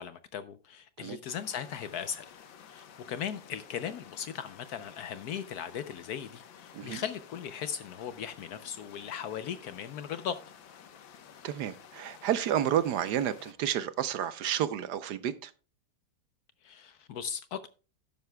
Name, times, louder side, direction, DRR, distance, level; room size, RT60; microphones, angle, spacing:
voice 1, 0.0-2.3 2.7-10.4 16.6-17.7, left 8 dB, 70° left, 1.0 m, -38 dB
sound 1, 1.3-13.5, left 8 dB, 85° left, 1.8 m, -53 dB
voice 2, 11.4-15.5, right 10 dB, 70° right, 1.1 m, -30 dB
12.5 x 10.5 x 2.2 m
omnidirectional pair, 2.0 m